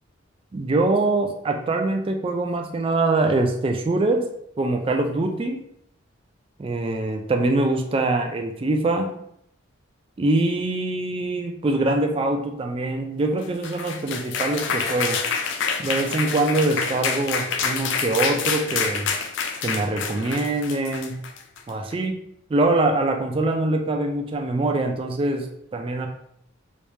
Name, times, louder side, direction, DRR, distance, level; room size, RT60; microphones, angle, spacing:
voice 1, 0.5-4.3 4.6-5.6 6.6-9.1 10.2-15.2 15.8-19.1 19.6-21.2 21.7-22.2 22.5-26.1, right 2 dB, 25° right, 3 dB, 0.3 m, -23 dB
sound 1, 13.4-21.7, left 5 dB, 60° left, 0.4 m, -27 dB
3.3 x 3.1 x 2.7 m, 0.72 s
head